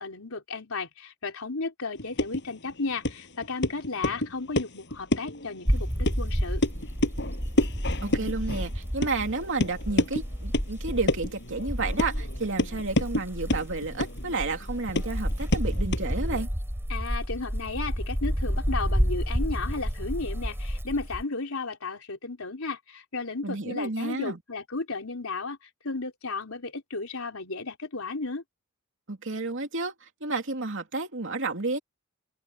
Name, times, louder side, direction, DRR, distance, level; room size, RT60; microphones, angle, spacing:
voice 1, 0.0-6.6 16.9-28.4, left 3 dB, 85° left, 3.5 m, -34 dB
sound 1, 2.0-16.5, left 1 dB, 60° left, 7.7 m, -31 dB
sound 2, 5.7-21.2, equal, 10° right, 3.8 m, -30 dB
voice 2, 8.0-16.5 23.4-24.4 29.1-31.8, right 3 dB, 65° right, 2.9 m, -31 dB
head